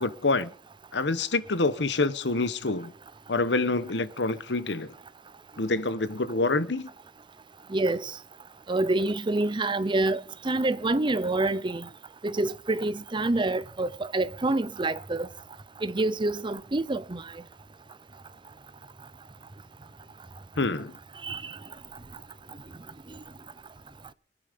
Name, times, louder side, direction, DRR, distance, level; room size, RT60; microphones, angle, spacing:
voice 1, 0.0-0.5 0.9-2.9 3.3-4.9 5.6-6.9 20.6-20.9, left 3 dB, 80° left, 1.1 m, -27 dB
voice 2, 7.7-8.1 8.7-11.9 12.2-15.3 15.8-17.2 21.2-21.5, right 2 dB, 30° right, 0.7 m, -27 dB
24.5 x 9.8 x 5.3 m
head